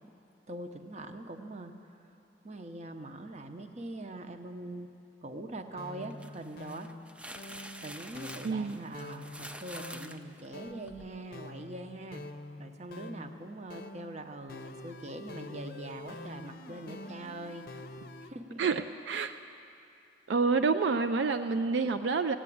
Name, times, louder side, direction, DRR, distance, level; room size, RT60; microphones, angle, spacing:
voice 1, 0.5-1.7 2.4-4.9 5.2-6.9 7.5-12.2 12.6-17.6 18.2-18.6, right 2 dB, 40° right, 7 dB, 0.8 m, -43 dB
sound 1, 5.7-18.3, left 2 dB, 55° left, 0.6 m, -46 dB
sound 2, 6.0-11.1, right 1 dB, 5° right, 0.4 m, -47 dB
voice 2, 8.4-8.9 18.6-19.3 20.3-22.3, right 4 dB, 75° right, 8 dB, 0.4 m, -28 dB
16.0 x 8.9 x 8.5 m, 2.8 s
head